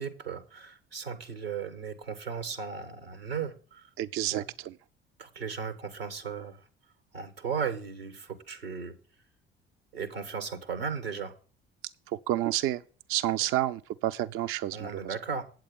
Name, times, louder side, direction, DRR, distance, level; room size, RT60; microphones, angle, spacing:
voice 1, 0.0-3.9 4.3-4.5 5.2-6.6 7.1-8.9 9.9-11.3 14.7-15.4, right 6 dB, 85° right, 1.3 m, -36 dB
voice 2, 4.0-4.7 12.1-12.8 13.1-15.2, right 13 dB, 50° right, 0.4 m, -30 dB
8.5 x 7.8 x 5.3 m
figure-of-eight pair, 55°, 29 cm